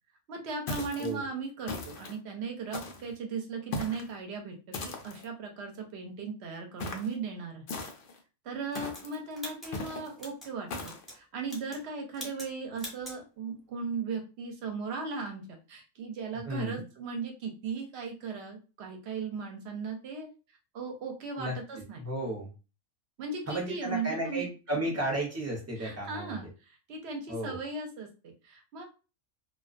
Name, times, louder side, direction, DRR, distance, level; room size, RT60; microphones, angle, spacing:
voice 1, 0.3-4.5 4.8-7.6 8.4-20.3 20.7-22.0 23.2-24.5 25.8-28.8, right 4 dB, 60° right, 2 dB, 0.8 m, -37 dB
sound 1, 0.7-1.1 1.7-2.2 2.7-3.1 3.7-4.1 4.7-5.3 6.8-7.1 7.7-8.2 8.7-9.2 9.7-10.1 10.7-11.0, left 3 dB, 70° left, 0.5 m, -38 dB
sound 2, 8.7-10.5 10.8-11.2 11.4-11.9 12.1-12.5 12.8-13.2, left 1 dB, ahead, 0.8 m, -44 dB
voice 2, 16.4-16.8 21.4-21.6 22.0-22.5 23.5-26.4 27.3-27.6, right 1 dB, 20° right, -2 dB, 0.4 m, -33 dB
2.3 x 2.2 x 2.4 m, 0.32 s
omnidirectional pair, 1.5 m